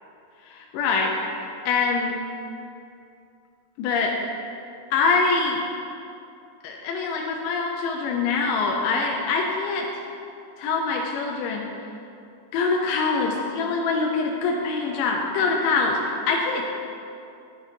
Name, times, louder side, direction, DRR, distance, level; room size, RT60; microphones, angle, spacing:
voice 1, 0.5-2.2 3.8-4.1 4.9-5.6 6.6-9.9 10.6-11.7 12.5-16.6, left 4 dB, 80° left, 0 dB, 2.1 m, -24 dB
9.8 x 4.0 x 3.2 m, 2.6 s
omnidirectional pair, 4.0 m